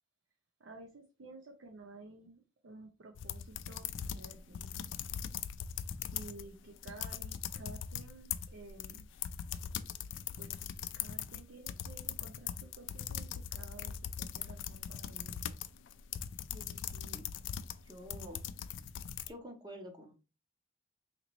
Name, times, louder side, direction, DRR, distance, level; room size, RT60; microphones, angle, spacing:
voice 1, 0.6-4.9 6.1-9.1 10.4-10.6 11.0-15.4, right 2 dB, 75° right, 4 dB, 0.5 m, -53 dB
sound 1, 3.2-6.5 6.8-19.3, left 9 dB, 70° left, 0.3 m, -41 dB
voice 2, 16.5-17.2 17.8-18.4 19.3-20.1, equal, 20° right, 4 dB, 0.6 m, -49 dB
3.9 x 2.9 x 2.9 m, 0.32 s
head